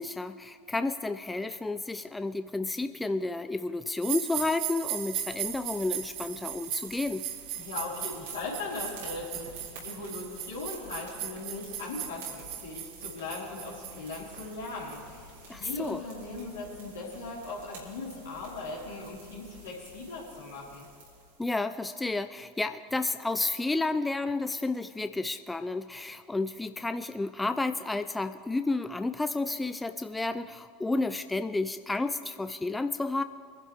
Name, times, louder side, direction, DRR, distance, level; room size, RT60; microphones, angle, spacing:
voice 1, 0.0-7.2 15.5-16.0 21.4-33.2, left 2 dB, 10° left, 10 dB, 0.5 m, -31 dB
sound 1, 4.0-15.0, right 11 dB, 55° right, 1.1 m, -38 dB
sound 2, 4.7-21.5, right 2 dB, 75° right, 3.6 m, -51 dB
voice 2, 7.6-20.9, left 3 dB, 75° left, -4 dB, 3.9 m, -39 dB
24.0 x 11.0 x 3.5 m, 2.3 s
hypercardioid pair, 75°, 0 cm